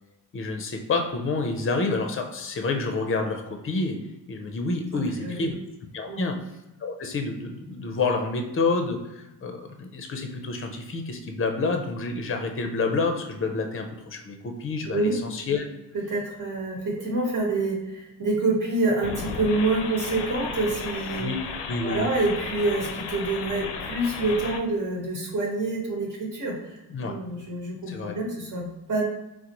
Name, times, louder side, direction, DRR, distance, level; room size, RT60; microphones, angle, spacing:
voice 1, 0.3-4.0 4.3-5.5 5.9-6.4 6.8-15.6 21.2-21.4 21.7-22.1 26.9-27.1 27.9-28.2, left 3 dB, 30° left, 4 dB, 0.6 m, -28 dB
voice 2, 4.9-5.5 6.1-6.3 14.9-15.2 15.9-21.2 21.8-29.0, right 2 dB, 45° right, -2 dB, 1.2 m, -27 dB
sound 1, 19.0-24.6, left 5 dB, 75° left, 0.5 m, -34 dB
3.9 x 2.1 x 2.9 m, 0.97 s
cardioid pair, 90°, 42 cm